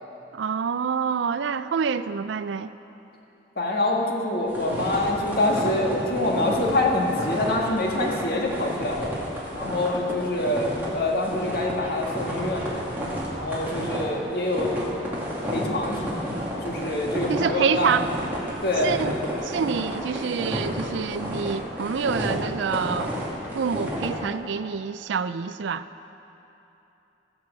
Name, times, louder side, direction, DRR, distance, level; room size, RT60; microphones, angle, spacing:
voice 1, 0.3-2.7 17.3-18.1 18.8-19.1 19.4-23.1 23.5-25.9, right 6 dB, 80° right, 13 dB, 0.4 m, -27 dB
voice 2, 3.6-9.1 9.5-12.8 13.3-14.7 15.5-16.3 16.6-17.9 18.6-18.9, left 2 dB, 55° left, -1 dB, 1.6 m, -25 dB
sound 1, 4.5-24.1, equal, 10° right, 2.3 m, -31 dB
16.0 x 6.1 x 7.4 m, 3.0 s
head